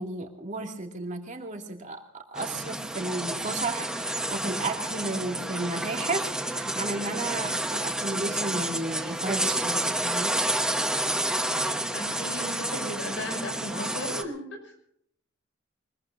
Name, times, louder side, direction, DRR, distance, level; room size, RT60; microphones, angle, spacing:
voice 1, 0.0-10.4, right 2 dB, 40° right, 2 dB, 2.4 m, -33 dB
sound 1, 2.4-14.2, right 1 dB, 5° right, 1.1 m, -30 dB
voice 2, 11.4-14.7, equal, 65° left, 4 dB, 6.2 m, -36 dB
24.5 x 21.5 x 2.7 m, 0.69 s
head